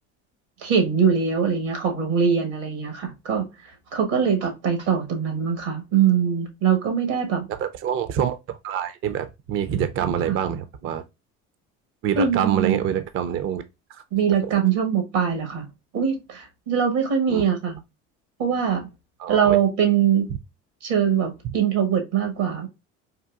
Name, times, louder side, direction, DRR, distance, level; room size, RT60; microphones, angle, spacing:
voice 1, 0.6-3.4 3.9-7.5 10.3-10.4 12.2-12.8 14.1-15.7 15.9-17.8 18.4-18.9 19.3-20.3 20.8-22.7, right 7 dB, 85° right, 1.2 m, -22 dB
voice 2, 7.5-11.0 12.0-13.6 17.3-17.4 19.2-19.6 21.4-21.5, right 9 dB, 40° right, 0.4 m, -26 dB
3.8 x 2.4 x 2.3 m
supercardioid pair, 80°, 35 cm